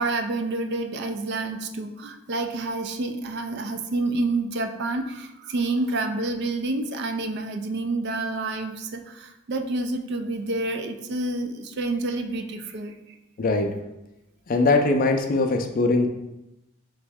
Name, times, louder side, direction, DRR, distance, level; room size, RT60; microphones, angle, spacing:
voice 1, 0.0-12.9, right 2 dB, 55° right, 6 dB, 0.4 m, -28 dB
voice 2, 13.4-13.7 14.5-16.1, left 3 dB, 40° left, 5 dB, 0.4 m, -21 dB
3.9 x 3.1 x 3.4 m, 0.91 s
head